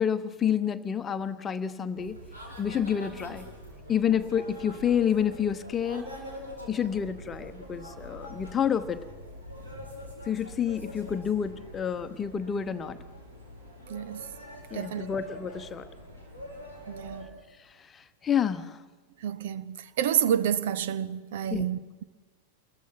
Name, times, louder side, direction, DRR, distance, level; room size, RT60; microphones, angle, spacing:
voice 1, 0.0-2.2 2.6-3.5 3.9-6.1 6.7-9.0 10.3-13.0 14.7-15.9 17.9-18.8 21.5-21.7, left 8 dB, 20° left, 1.1 m, -29 dB
sound 1, 1.9-17.2, equal, 75° right, 5.5 m, -44 dB
voice 2, 13.9-14.2 14.7-15.1 16.9-17.3 19.2-22.0, right 9 dB, 55° right, 0.8 m, -29 dB
29.0 x 22.0 x 6.0 m
figure-of-eight pair, 90°, 0 cm